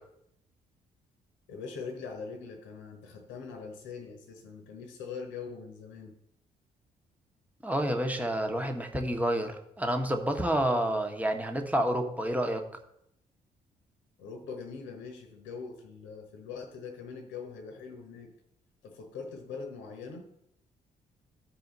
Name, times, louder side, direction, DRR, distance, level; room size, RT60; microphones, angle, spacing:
voice 1, 1.5-6.1 14.2-18.3 18.8-20.3, left 5 dB, 60° left, 4 dB, 1.2 m, -42 dB
voice 2, 7.6-12.7, right 1 dB, 5° right, 4 dB, 1.3 m, -29 dB
14.0 x 4.9 x 4.0 m, 0.76 s
figure-of-eight pair, 40°, 21 cm